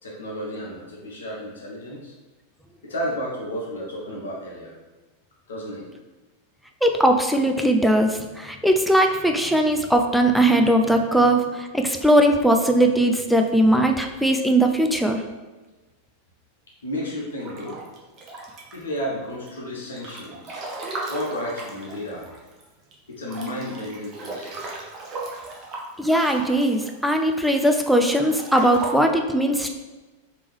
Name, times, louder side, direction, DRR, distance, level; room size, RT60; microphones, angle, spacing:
voice 1, 0.0-2.1 2.8-4.7 5.5-5.9 16.8-17.8 18.7-20.6 21.1-22.3 23.1-24.6, equal, 65° left, -3 dB, 0.8 m, -32 dB
voice 2, 6.8-15.2 26.0-29.7, right 1 dB, ahead, 3 dB, 0.3 m, -19 dB
Breathing / Bathtub (filling or washing) / Splash splatter, 17.4-19.0 19.5-22.6 22.9-23.0 23.3-27.5 28.0-28.9, right 2 dB, 30° right, 0.7 m, -36 dB
3.5 x 2.9 x 3.1 m, 1.2 s
figure-of-eight pair, 90°, 0 cm